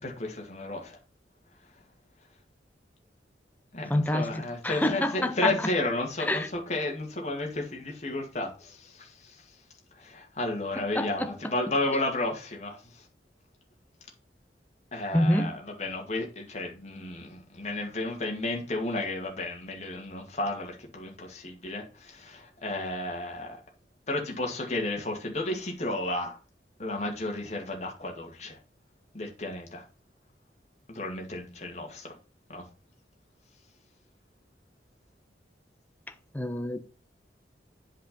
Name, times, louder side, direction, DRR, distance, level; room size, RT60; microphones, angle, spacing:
voice 1, 0.0-1.0 3.7-9.5 9.9-13.1 14.9-23.6 24.1-26.4 26.8-28.6 29.1-29.9 30.9-32.2 32.5-32.7, left 2 dB, 40° left, 2.2 m, -33 dB
voice 2, 3.9-5.7 6.3-6.5 10.8-11.5 15.1-15.5 36.3-36.8, left 1 dB, 10° left, 0.8 m, -27 dB
8.1 x 5.0 x 5.3 m
head